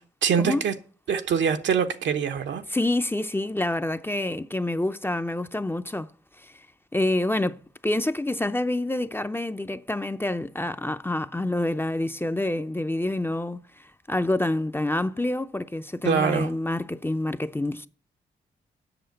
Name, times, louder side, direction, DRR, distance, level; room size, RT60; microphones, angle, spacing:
voice 1, 0.2-0.7 1.1-2.6 16.0-16.5, right 7 dB, 75° right, 1.0 m, -24 dB
voice 2, 2.7-6.1 6.4-6.6 6.9-17.9, left 1 dB, 10° left, 0.6 m, -27 dB
7.9 x 6.3 x 7.9 m
supercardioid pair, 50°, 19 cm